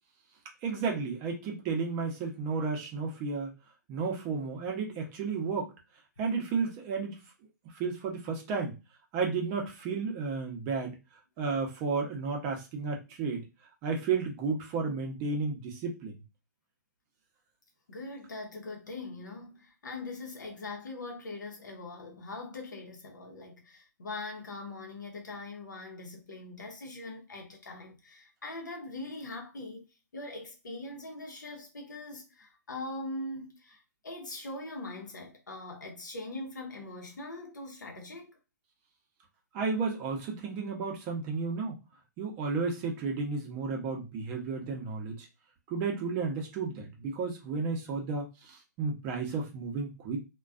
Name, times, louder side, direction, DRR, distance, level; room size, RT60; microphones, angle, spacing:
voice 1, 0.6-3.5 3.9-5.7 6.2-7.2 7.7-8.8 9.1-11.0 11.4-13.5 13.8-16.2 39.5-41.8 42.2-45.3 45.7-50.2, right 4 dB, 25° right, 0.6 m, -32 dB
voice 2, 17.9-29.9 30.1-38.4, left 2 dB, 85° left, 0.7 m, -42 dB
2.3 x 2.2 x 2.3 m
hypercardioid pair, 140°, 10 cm